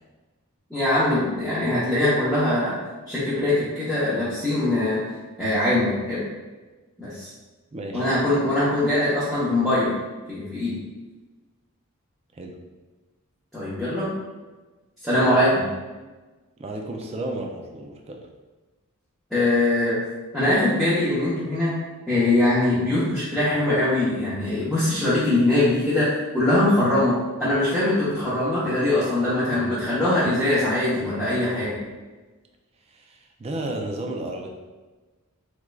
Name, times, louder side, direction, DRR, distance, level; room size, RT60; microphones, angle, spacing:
voice 1, 0.7-2.8 3.1-5.0 5.4-6.3 7.0-7.3 7.9-9.9 10.3-10.9 13.5-14.1 15.0-15.7 19.3-20.0 20.3-21.7 22.1-26.1 26.3-31.8, left 1 dB, ahead, -12 dB, 0.8 m, -22 dB
voice 2, 7.7-8.1 12.3-12.6 16.6-18.2 32.9-34.5, right 1 dB, 30° right, 3 dB, 0.4 m, -33 dB
3.6 x 3.2 x 2.3 m, 1.2 s
head